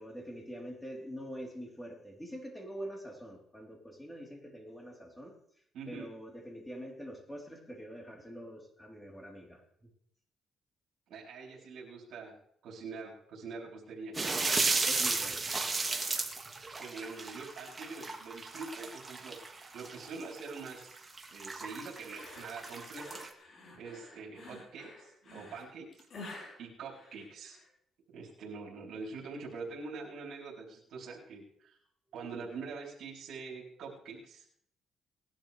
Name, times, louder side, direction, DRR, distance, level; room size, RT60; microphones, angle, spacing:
voice 1, 0.0-5.3 5.9-9.6 14.9-15.5, equal, 10° left, 0 dB, 3.8 m, -45 dB
voice 2, 5.7-6.1 11.1-12.3 12.6-14.1 16.5-20.9 21.3-23.2 23.8-26.1 26.6-27.6 28.1-31.8 32.1-34.4, right 4 dB, 75° right, -3 dB, 3.8 m, -44 dB
sound 1, 14.1-23.3, right 3 dB, 25° right, 2.1 m, -34 dB
sound 2, 22.2-27.7, left 2 dB, 55° left, 4.5 m, -50 dB
19.5 x 11.5 x 3.4 m, 0.67 s
cardioid pair, 90°, 0 cm